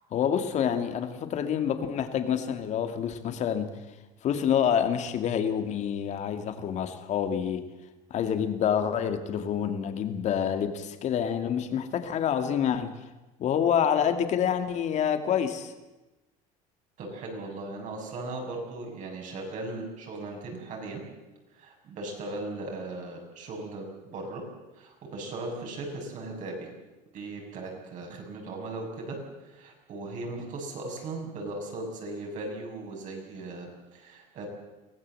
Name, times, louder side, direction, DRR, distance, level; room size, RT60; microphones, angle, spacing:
voice 1, 0.1-3.7 4.2-7.6 8.1-13.0 13.4-15.7, left 8 dB, 45° left, 8 dB, 2.3 m, -27 dB
voice 2, 17.0-21.0 21.5-24.4 24.7-26.7 27.1-29.2 29.4-34.5, right 2 dB, 50° right, 1 dB, 7.1 m, -38 dB
23.5 x 17.0 x 7.7 m, 1.1 s
cardioid pair, 135°, 16 cm